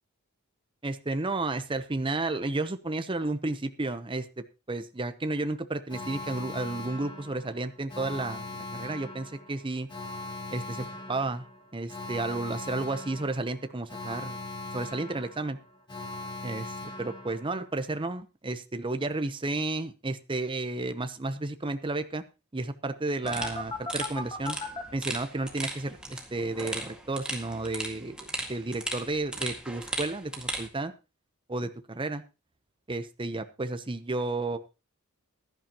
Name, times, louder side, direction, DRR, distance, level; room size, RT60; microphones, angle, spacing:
voice 1, 0.8-9.9 10.5-11.4 11.7-14.4 14.7-15.6 16.4-22.2 22.5-24.6 24.9-30.9 31.5-32.2 32.9-34.6, right 2 dB, 25° right, 10 dB, 0.8 m, -32 dB
Alarm, 5.9-17.8 23.3-24.8, left 2 dB, 20° left, 2.1 m, -40 dB
sound 1, 23.2-30.7, right 1 dB, 5° right, 1.9 m, -37 dB
16.0 x 11.5 x 3.0 m, 0.29 s
head